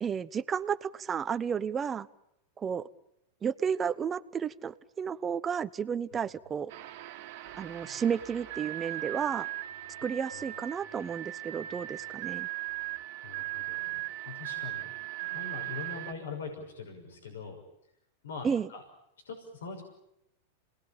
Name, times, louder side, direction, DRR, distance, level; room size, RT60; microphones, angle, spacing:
voice 1, 0.0-2.1 2.6-2.9 3.4-6.7 7.6-9.5 10.0-12.5 18.4-18.7, right 7 dB, 25° right, 13 dB, 1.0 m, -32 dB
sound 1, 6.7-16.1, right 16 dB, 65° right, 1.9 m, -38 dB
voice 2, 13.2-14.0 14.3-14.9 15.2-17.6 18.2-18.8 19.3-19.8, left 5 dB, 85° left, 2 dB, 6.0 m, -42 dB
28.0 x 19.5 x 8.9 m, 0.82 s
hypercardioid pair, 115°, 0 cm